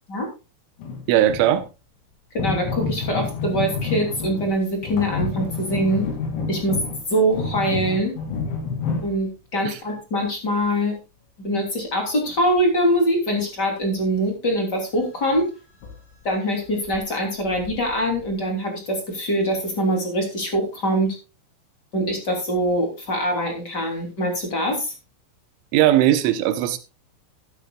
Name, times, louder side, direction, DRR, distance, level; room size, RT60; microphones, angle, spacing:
sound 1, 0.8-1.7 2.4-4.6 4.8-9.1 15.3-15.4 15.8-16.0 16.3-16.4 16.9-17.0 17.4-18.4, left 4 dB, 65° left, 4.6 m, -29 dB
voice 1, 1.1-1.6 9.6-9.8 25.7-26.8, right 12 dB, 75° right, 3.3 m, -18 dB
voice 2, 2.3-6.1 6.5-6.8 7.1-8.1 9.0-11.0 11.4-15.5 16.2-21.2 21.9-24.9, equal, 25° left, 2.5 m, -23 dB
13.5 x 12.0 x 2.4 m
omnidirectional pair, 6.0 m